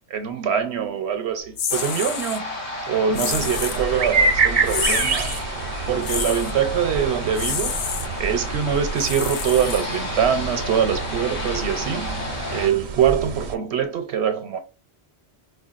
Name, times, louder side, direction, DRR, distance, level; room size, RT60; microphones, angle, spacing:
voice 1, 0.1-2.6 2.9-5.3 5.9-14.6, right 8 dB, 80° right, 0.9 m, -24 dB
sound 1, 1.6-2.4 3.1-3.8 4.7-5.4 6.0-6.5 7.3-8.1 9.0-10.1, left 7 dB, 75° left, 0.8 m, -29 dB
sound 2, 1.7-12.7, left 2 dB, 55° left, 1.5 m, -32 dB
sound 3, 3.3-13.6, right 4 dB, 50° right, 0.6 m, -27 dB
4.9 x 2.3 x 2.4 m
omnidirectional pair, 1.1 m